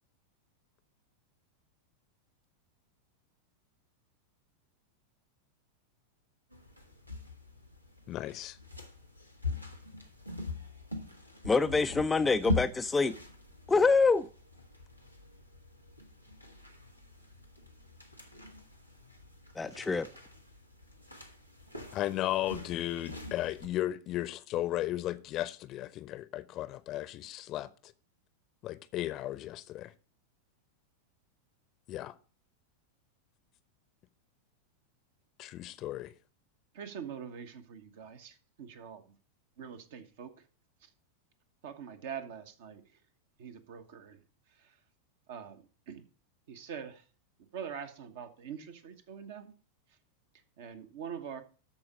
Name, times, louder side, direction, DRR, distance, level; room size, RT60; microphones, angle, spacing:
sound 1, 6.5-23.7, left 2 dB, 90° right, 1.2 m, -42 dB
voice 1, 8.1-8.6 21.9-27.9 28.6-29.9 31.9-32.1 35.4-36.1, left 14 dB, 35° left, 0.7 m, -35 dB
voice 2, 11.4-13.2 13.7-14.3 19.6-20.1, left 4 dB, 10° left, 0.3 m, -26 dB
voice 3, 36.7-39.1 39.6-40.3 40.8-40.9 41.6-42.8 43.4-44.2 44.6-44.7 45.3-46.0 46.5-47.0 47.5-49.5 50.6-51.4, right 7 dB, 55° right, 1.2 m, -44 dB
13.0 x 4.4 x 5.1 m
figure-of-eight pair, 90°, 0 cm